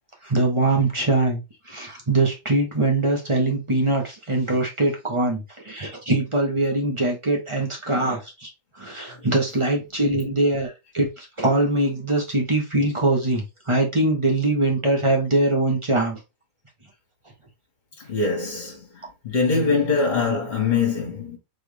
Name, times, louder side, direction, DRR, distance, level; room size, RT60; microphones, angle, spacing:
voice 1, 0.2-8.5 8.8-16.2, right 2 dB, 20° right, 1.0 m, -22 dB
voice 2, 18.0-21.4, left 4 dB, 40° left, 1.6 m, -23 dB
4.3 x 3.4 x 3.3 m
omnidirectional pair, 1.7 m